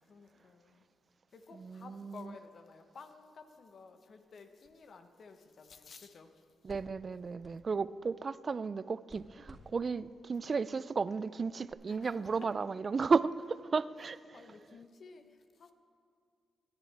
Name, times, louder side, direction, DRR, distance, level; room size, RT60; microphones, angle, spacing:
voice 1, 0.0-0.9 1.3-6.7 10.4-10.5 11.9-12.5 14.0-14.1 14.3-15.7, left 4 dB, 60° left, 1.0 m, -54 dB
voice 2, 1.6-2.2 6.6-13.3 13.7-14.4, right 5 dB, 45° right, 0.3 m, -33 dB
sound 1, 4.2-11.7, equal, 15° right, 3.0 m, -62 dB
17.5 x 10.5 x 3.4 m
supercardioid pair, 60°, 0 cm